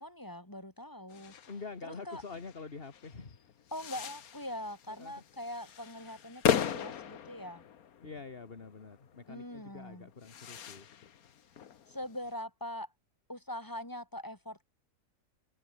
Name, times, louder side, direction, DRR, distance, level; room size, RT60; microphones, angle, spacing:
voice 1, 0.0-1.4 1.8-2.2 3.7-7.6 9.3-10.1 11.9-12.9 13.3-14.6, left 1 dB, 15° left, 5.3 m, -42 dB
sound 1, 1.1-12.3, left 8 dB, 80° left, 1.6 m, -38 dB
voice 2, 1.5-3.5 4.9-5.2 8.0-10.9, left 4 dB, 40° left, 2.1 m, -46 dB
omnidirectional pair, 1.5 m